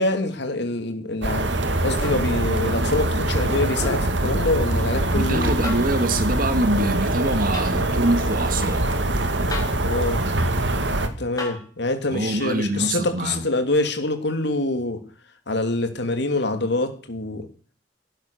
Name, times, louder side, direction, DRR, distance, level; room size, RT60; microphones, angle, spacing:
voice 1, 0.0-1.5 1.8-5.5 9.8-10.2 11.2-15.0 15.5-17.5, left 2 dB, 70° left, 7 dB, 3.1 m, -25 dB
sound 1, 1.2-11.1, right 1 dB, 75° right, 2.2 m, -23 dB
sound 2, 2.0-2.3 3.8-4.1 5.6-6.0 7.5-7.7 9.5-9.9 11.4-11.7 13.4-13.5, left 2 dB, 20° left, 5.5 m, -33 dB
voice 2, 5.1-8.8 12.1-13.4, right 1 dB, 50° right, 9 dB, 2.3 m, -24 dB
17.5 x 10.5 x 6.8 m, 0.41 s
head